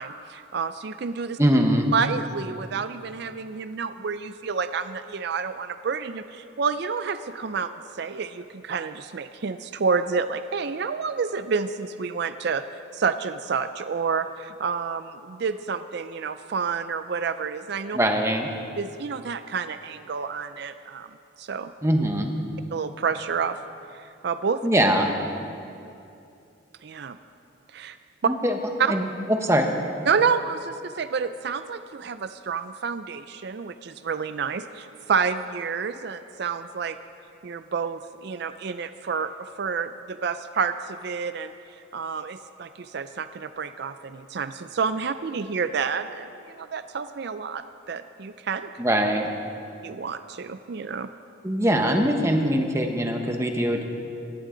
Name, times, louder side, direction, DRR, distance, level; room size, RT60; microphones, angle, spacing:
voice 1, 0.0-1.4 1.9-7.7 8.0-12.6 12.9-18.0 18.8-21.1 21.4-21.7 22.7-23.6 23.9-24.6 26.8-27.2 27.7-28.0 28.8-28.9 30.1-37.0 37.4-41.5 41.9-48.7 49.8-51.1, right 5 dB, 55° right, 11 dB, 0.4 m, -29 dB
voice 2, 1.4-1.9 17.9-18.5 21.8-22.3 24.6-25.1 28.2-28.5 28.9-29.7 48.8-49.3 51.4-53.8, equal, 15° right, 3 dB, 1.0 m, -22 dB
17.0 x 15.5 x 3.9 m, 2.6 s
head